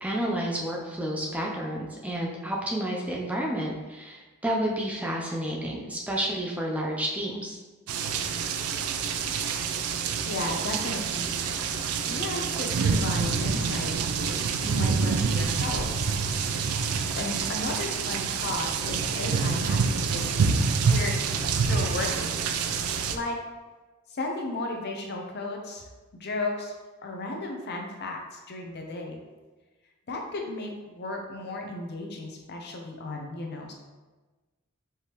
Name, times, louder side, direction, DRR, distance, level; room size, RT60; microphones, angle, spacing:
voice 1, 0.0-7.6, right 1 dB, 5° right, -2 dB, 0.4 m, -30 dB
sound 1, 7.9-23.2, right 5 dB, 90° right, 0.4 m, -27 dB
voice 2, 10.3-11.4 12.1-16.1 17.2-20.6 20.9-22.3 23.1-23.4 24.1-25.8 26.1-26.7 27.0-29.2 30.1-33.7, left 2 dB, 50° left, 1 dB, 0.6 m, -34 dB
4.6 x 3.4 x 2.9 m, 1.2 s
head